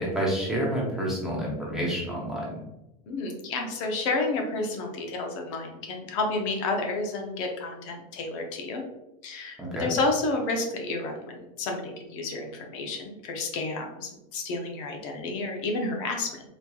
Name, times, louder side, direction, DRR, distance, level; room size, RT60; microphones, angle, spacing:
voice 1, 0.0-2.6 9.6-9.9, right 1 dB, 5° right, -5 dB, 0.7 m, -29 dB
voice 2, 3.1-8.8 9.2-16.4, left 3 dB, 55° left, 2 dB, 0.7 m, -30 dB
4.2 x 2.8 x 2.3 m, 0.95 s
supercardioid pair, 165°, 19 cm